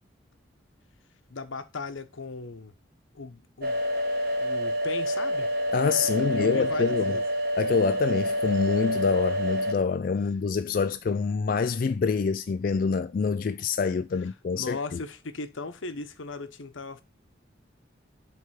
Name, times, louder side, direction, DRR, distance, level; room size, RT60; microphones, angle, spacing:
voice 1, 1.3-2.7 3.1-3.8 4.4-5.5 6.1-7.2 14.5-17.0, left 3 dB, 85° left, 0.9 m, -37 dB
sound 1, 3.6-9.7, equal, 50° right, 1.3 m, -27 dB
voice 2, 5.7-7.2 7.6-15.0, left 5 dB, 45° left, 0.3 m, -26 dB
7.8 x 3.4 x 6.2 m
head